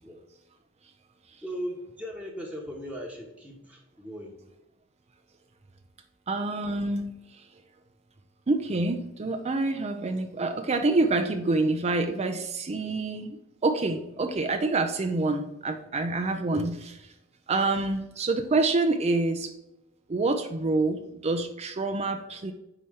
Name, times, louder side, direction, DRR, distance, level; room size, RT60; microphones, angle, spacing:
voice 1, 1.4-4.3 12.8-12.9, equal, 5° right, -2 dB, 1.1 m, -38 dB
voice 2, 6.3-7.5 8.5-13.4 13.6-17.1 17.5-19.5 20.1-22.5, right 3 dB, 30° right, 6 dB, 0.5 m, -27 dB
4.9 x 4.2 x 5.7 m, 0.91 s
head